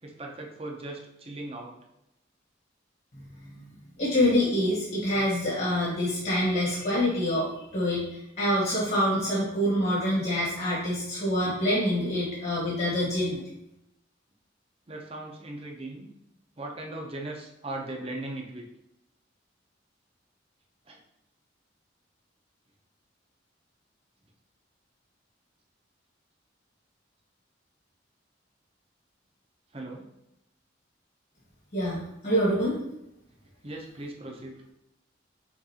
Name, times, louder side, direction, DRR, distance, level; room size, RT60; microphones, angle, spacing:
voice 1, 0.0-1.7 14.9-16.1 16.6-18.6 20.9-21.0 29.7-30.1 33.6-34.6, right 2 dB, 30° right, 1 dB, 0.7 m, -38 dB
voice 2, 4.0-13.4 31.7-32.8, equal, 50° left, -6 dB, 1.5 m, -26 dB
6.1 x 2.6 x 2.8 m, 0.85 s
head